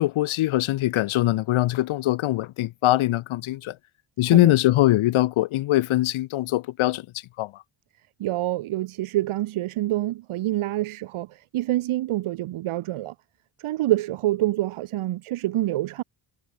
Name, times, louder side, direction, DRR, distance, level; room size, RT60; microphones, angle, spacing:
voice 1, 0.0-3.7 4.2-7.6, left 16 dB, 75° left, 1.4 m, -22 dB
voice 2, 8.2-13.1 13.6-16.0, right 15 dB, 90° right, 2.5 m, -26 dB
cardioid pair, 165°, 48 cm